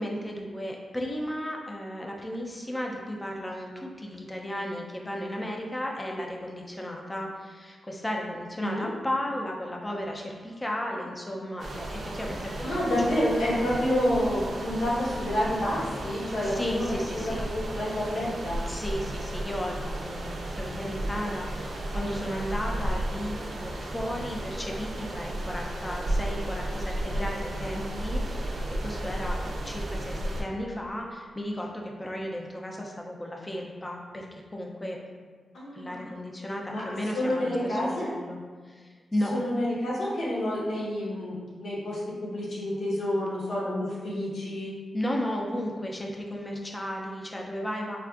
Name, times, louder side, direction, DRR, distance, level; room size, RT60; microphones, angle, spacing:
voice 1, 0.0-13.4 16.4-17.4 18.6-35.0 35.7-38.4 38.6-39.4 44.9-48.0, equal, 15° left, 0 dB, 0.4 m, -34 dB
sound 1, 11.6-30.4, right 1 dB, 60° right, 0.4 m, -34 dB
voice 2, 12.6-18.6 35.5-36.0 36.7-36.8 37.1-38.1 39.3-44.7, left 1 dB, 85° left, -8 dB, 1.1 m, -29 dB
4.3 x 2.4 x 2.3 m, 1.5 s
wide cardioid pair, 130°, 0 cm